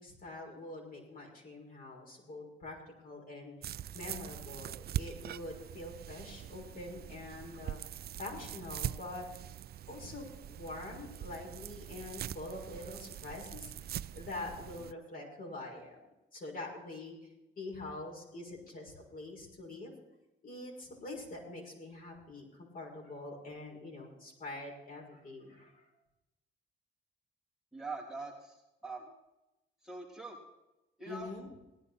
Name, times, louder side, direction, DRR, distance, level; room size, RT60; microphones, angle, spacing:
voice 1, 0.0-7.8 8.2-9.3 9.9-13.7 14.1-16.0 16.3-17.2 17.6-19.9 20.4-25.9 31.0-31.5, left 2 dB, 45° left, -1 dB, 6.3 m, -45 dB
sound 1, 3.6-14.9, right 11 dB, 55° right, 0.4 m, -43 dB
voice 2, 27.7-28.6 28.8-29.1 29.8-30.4 31.0-31.3, right 3 dB, ahead, -5 dB, 3.4 m, -43 dB
18.0 x 10.5 x 4.3 m, 0.95 s
cardioid pair, 90°, 20 cm